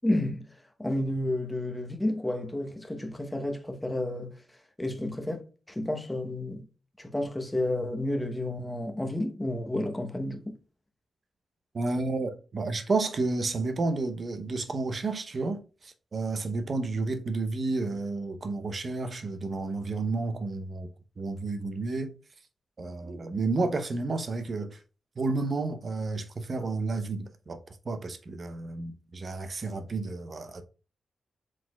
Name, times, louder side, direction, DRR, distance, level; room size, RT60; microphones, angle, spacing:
voice 1, 0.0-0.5 0.8-4.3 4.8-6.6 7.0-10.5, left 1 dB, 10° left, 0.8 m, -31 dB
voice 2, 11.7-20.9 21.2-22.1 22.8-24.8 25.2-27.6 27.8-30.6, right 3 dB, 40° right, 0.7 m, -31 dB
4.9 x 3.9 x 2.2 m
cardioid pair, 105°, 0 cm